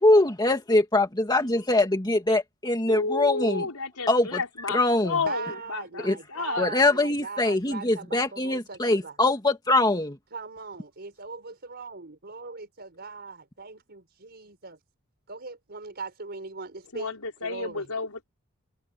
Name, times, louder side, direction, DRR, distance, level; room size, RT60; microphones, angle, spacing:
voice 1, 0.0-3.7 4.1-4.4 4.7-5.2 6.0-6.2 6.6-10.2, left 2 dB, 20° left, 2.4 m, -23 dB
voice 2, 2.9-6.7 16.9-18.2, left 4 dB, 80° left, 4.8 m, -31 dB
voice 3, 5.3-9.2 10.3-14.8 15.3-17.1 17.4-17.9, right 4 dB, 50° right, 5.3 m, -39 dB
head